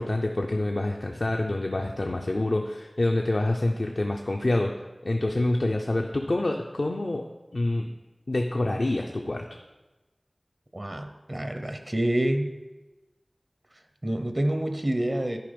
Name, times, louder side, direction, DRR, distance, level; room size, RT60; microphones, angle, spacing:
voice 1, 0.0-4.7 5.0-7.2 7.5-7.9 8.3-9.6, left 2 dB, 70° left, 2 dB, 0.5 m, -27 dB
voice 2, 10.7-12.5 14.0-15.4, right 1 dB, 45° right, 7 dB, 0.7 m, -27 dB
11.0 x 4.6 x 5.1 m, 1.1 s
wide cardioid pair, 50°, 0 cm